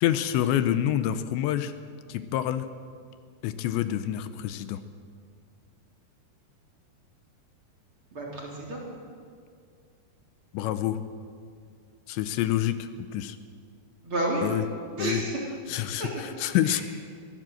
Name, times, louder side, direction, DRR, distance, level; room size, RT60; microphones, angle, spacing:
voice 1, 0.0-1.7 2.1-2.7 3.4-4.8 10.5-11.0 12.1-13.4 14.4-14.7 15.0-15.2 15.7-16.8, left 12 dB, 80° left, 11 dB, 3.0 m, -27 dB
voice 2, 8.1-8.8 14.0-14.5 15.0-15.4 16.0-16.1, right 1 dB, 30° right, -3 dB, 3.7 m, -30 dB
23.5 x 15.0 x 7.8 m, 2.2 s
omnidirectional pair, 5.2 m